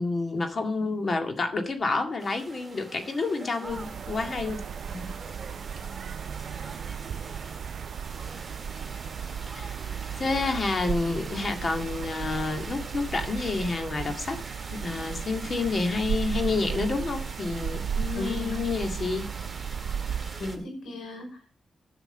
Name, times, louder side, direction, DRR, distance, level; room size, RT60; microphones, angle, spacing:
voice 1, 0.0-4.6 9.5-9.7 10.2-14.4 14.7-19.3, left 3 dB, 45° left, 5 dB, 2.0 m, -29 dB
sound 1, 2.2-20.6, right 2 dB, 20° right, 2.1 m, -44 dB
sound 2, 3.6-20.6, right 7 dB, 75° right, 0.6 m, -35 dB
voice 2, 18.1-18.6 20.4-21.5, left 2 dB, 90° left, 3 dB, 4.9 m, -36 dB
11.0 x 5.9 x 6.7 m, 0.40 s
cardioid pair, 85°, 0 cm